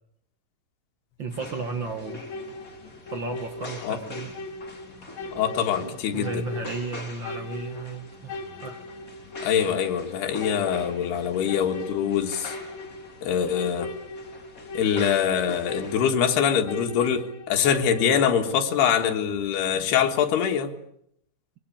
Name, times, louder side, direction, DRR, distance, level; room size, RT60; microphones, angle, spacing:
voice 1, 1.2-2.2 3.1-4.4 5.8-8.3 8.6-8.8, right 3 dB, 85° right, 6 dB, 1.0 m, -34 dB
sound 1, 1.3-16.0, left 2 dB, 20° left, 3.4 m, -44 dB
sound 2, 2.0-18.5, left 2 dB, 55° left, 2.2 m, -40 dB
voice 2, 5.3-6.5 9.4-12.6 13.2-13.9 14.7-20.7, left 8 dB, 90° left, 4 dB, 3.8 m, -24 dB
24.0 x 22.0 x 8.7 m, 0.75 s
omnidirectional pair, 4.5 m